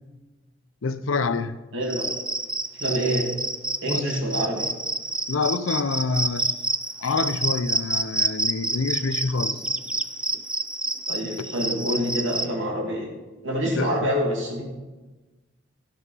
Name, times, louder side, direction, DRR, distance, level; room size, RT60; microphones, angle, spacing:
voice 1, 0.8-1.6 3.9-4.1 5.3-6.5 7.0-9.6 11.2-11.3 13.6-14.1, left 4 dB, 85° left, 0.6 m, -27 dB
voice 2, 1.7-2.0 2.8-3.3 3.8-4.7 11.1-13.1 13.4-14.7, equal, 70° right, 2.6 m, -26 dB
Cricket, 1.8-12.5, right 2 dB, 5° right, 0.3 m, -28 dB
14.0 x 5.7 x 5.6 m
head